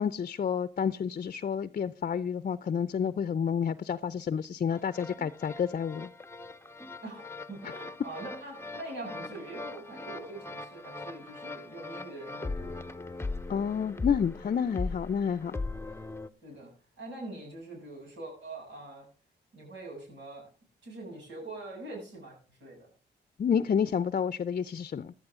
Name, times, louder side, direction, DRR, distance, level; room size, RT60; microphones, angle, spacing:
voice 1, 0.0-6.1 13.5-15.6 23.4-25.1, left 7 dB, 45° left, 0.6 m, -29 dB
sound 1, 4.7-16.3, left 3 dB, 15° left, 0.8 m, -40 dB
voice 2, 7.0-12.7 16.4-16.7 17.0-19.1 19.5-20.5 20.8-22.9, right 2 dB, 80° right, 7.8 m, -43 dB
15.5 x 11.5 x 3.7 m
supercardioid pair, 60°, 19 cm